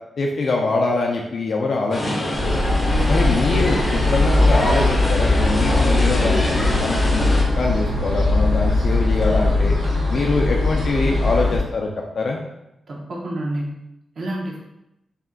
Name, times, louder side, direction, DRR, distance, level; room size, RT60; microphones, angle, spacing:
voice 1, 0.2-2.6 3.1-7.3 7.6-9.7 10.1-11.9 12.1-12.4, left 3 dB, 50° left, 0 dB, 0.4 m, -23 dB
sound 1, 1.9-7.4, left 1 dB, 30° left, 0.8 m, -25 dB
urban morning noise, 2.3-11.6, left 2 dB, 85° right, 1.3 m, -20 dB
voice 2, 2.9-3.3 12.9-13.8 14.2-14.6, right 1 dB, 55° right, -3 dB, 0.7 m, -28 dB
4.2 x 3.6 x 2.2 m, 0.87 s
wide cardioid pair, 170°, 0 cm